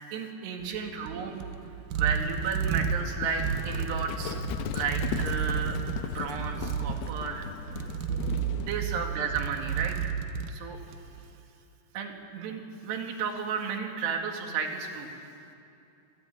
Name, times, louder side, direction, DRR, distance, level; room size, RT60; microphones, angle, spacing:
voice 1, 0.1-1.4 1.9-4.3 4.7-5.8 6.1-7.5 8.6-10.1 10.5-10.8 11.9-15.1, right 6 dB, 70° right, 2 dB, 4.1 m, -33 dB
sound 1, 0.6-11.2, right 7 dB, 90° right, 1.9 m, -32 dB
Livestock farm animals working animals, 2.1-8.8, left 10 dB, 80° left, 2.4 m, -38 dB
27.0 x 15.5 x 8.9 m, 2.6 s
omnidirectional pair, 5.2 m